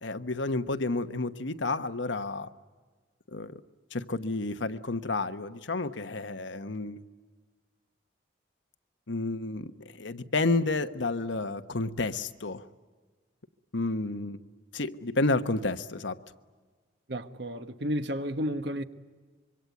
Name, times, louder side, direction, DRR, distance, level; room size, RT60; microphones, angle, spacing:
voice 1, 0.0-2.5 3.3-3.6 3.9-7.0 9.1-9.7 10.0-12.6 13.7-14.4 14.7-16.2, left 3 dB, 85° left, 1.2 m, -30 dB
voice 2, 17.1-18.8, equal, 65° right, 1.4 m, -32 dB
25.5 x 24.0 x 9.4 m
head